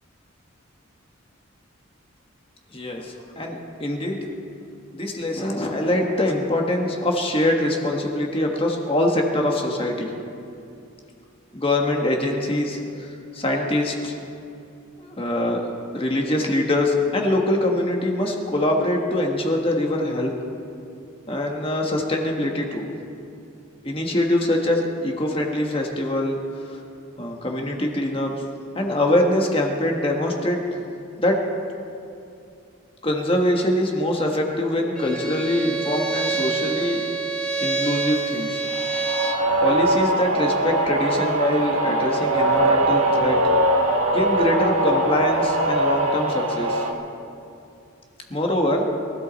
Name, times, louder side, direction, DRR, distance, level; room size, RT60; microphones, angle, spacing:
voice 1, 2.7-4.3 4.9-10.1 11.5-14.1 15.0-15.6 15.9-20.3 21.3-22.9 23.8-26.4 26.7-26.8 27.2-28.3 28.7-30.6 31.2-31.4 33.0-37.1 37.6-38.6 39.6-43.5 44.1-46.8 48.3-48.9, left 1 dB, 25° left, 1 dB, 1.4 m, -23 dB
Bowed string instrument, 35.0-39.5, right 4 dB, 5° left, 1.3 m, -27 dB
sound 1, 38.7-46.9, right 1 dB, 90° right, 1.6 m, -21 dB
22.5 x 14.0 x 4.1 m, 2.6 s
head